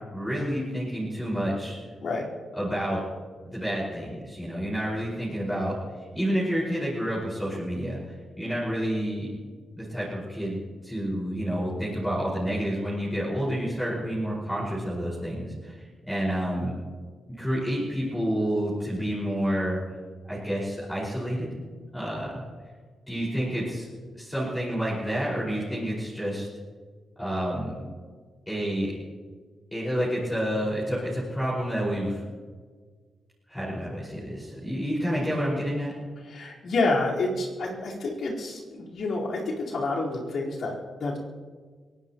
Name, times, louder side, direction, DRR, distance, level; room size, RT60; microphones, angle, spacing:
voice 1, 0.1-1.8 2.5-3.0 3.5-5.7 6.1-8.0 8.4-9.3 9.8-16.7 17.4-19.8 20.3-21.5 21.9-22.4 23.1-26.5 27.2-27.7 28.5-28.9 29.7-32.2 33.5-35.9, equal, 10° left, -7 dB, 5.4 m, -29 dB
voice 2, 36.2-41.2, left 2 dB, 70° left, -4 dB, 4.4 m, -29 dB
23.0 x 18.0 x 3.1 m, 1.5 s
cardioid pair, 90°, 0 cm